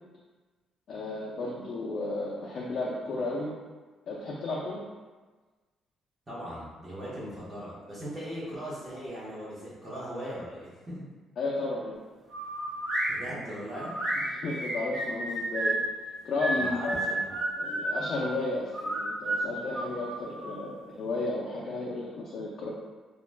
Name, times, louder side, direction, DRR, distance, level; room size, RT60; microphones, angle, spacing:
voice 1, 0.9-3.5 4.1-4.8 11.4-12.0 14.3-15.8 16.2-17.0 17.6-22.7, left 2 dB, 45° left, -5 dB, 0.4 m, -33 dB
voice 2, 6.3-11.0 13.1-14.0 16.5-17.4, equal, 20° right, -9 dB, 0.6 m, -39 dB
sound 1, 12.3-13.1 13.8-15.8 16.4-18.2 18.7-20.6, right 1 dB, 50° right, 0.8 m, -31 dB
2.4 x 2.2 x 3.1 m, 1.3 s
cardioid pair, 165°, 0 cm